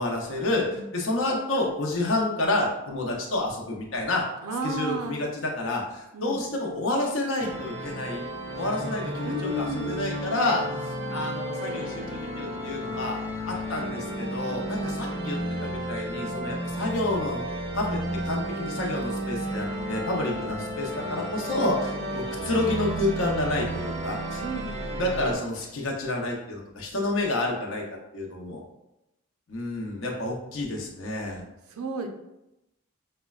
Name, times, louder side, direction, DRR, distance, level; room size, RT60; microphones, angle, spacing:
voice 1, 0.0-4.3 4.6-8.3 8.6-13.2 13.5-17.4 17.7-24.4 25.0-27.8 28.1-28.6 29.5-31.4, left 2 dB, 60° left, -1 dB, 0.7 m, -29 dB
voice 2, 4.4-5.2 6.1-6.4 9.2-10.0 14.8-15.0 21.9-22.2 24.4-25.0 31.7-32.1, right 2 dB, 85° right, 5 dB, 0.5 m, -34 dB
sound 1, 7.4-25.4, right 1 dB, 30° right, 0.5 m, -33 dB
5.0 x 2.1 x 2.3 m, 0.90 s
head